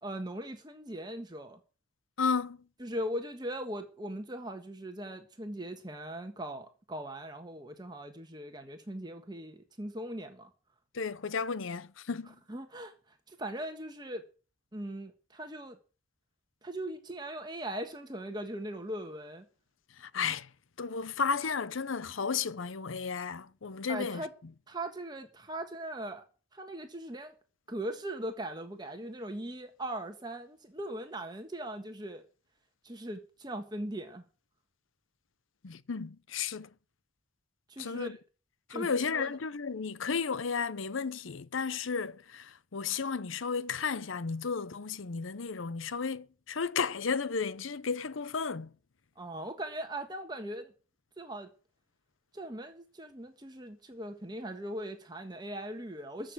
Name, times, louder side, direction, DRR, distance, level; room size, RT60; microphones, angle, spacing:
voice 1, 0.0-1.6 2.8-10.5 12.5-12.9 13.3-14.2 14.7-15.8 16.6-19.5 23.9-24.3 24.7-26.2 26.5-27.3 27.7-32.2 32.8-34.2 37.7-38.2 38.7-39.3 49.2-50.7 51.2-51.5 52.3-56.3, right 1 dB, 20° right, 1.4 m, -40 dB
voice 2, 2.2-2.6 10.9-12.4 20.0-20.5 20.8-24.3 35.6-36.7 37.8-38.2 38.7-48.7, left 5 dB, 80° left, 0.7 m, -33 dB
14.5 x 6.6 x 8.4 m
head